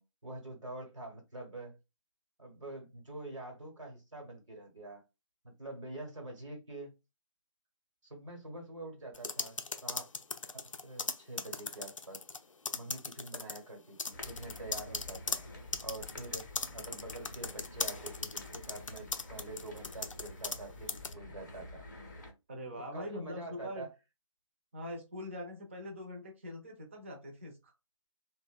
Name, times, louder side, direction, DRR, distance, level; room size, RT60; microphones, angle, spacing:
voice 1, 0.0-1.8 2.4-5.0 5.4-6.9 8.0-10.1 10.5-12.2 12.7-15.4 15.8-21.9 22.8-23.9, right 2 dB, 65° right, 0.9 m, -46 dB
sound 1, 9.1-12.4 12.6-13.6 14.0-20.6 20.9-21.1, left 4 dB, 75° left, 0.4 m, -38 dB
sound 2, 14.1-22.3, left 1 dB, 35° left, 0.6 m, -49 dB
voice 2, 22.5-23.9 24.7-27.7, left 1 dB, 25° right, 0.5 m, -43 dB
2.7 x 2.0 x 2.2 m
figure-of-eight pair, 150°, 17 cm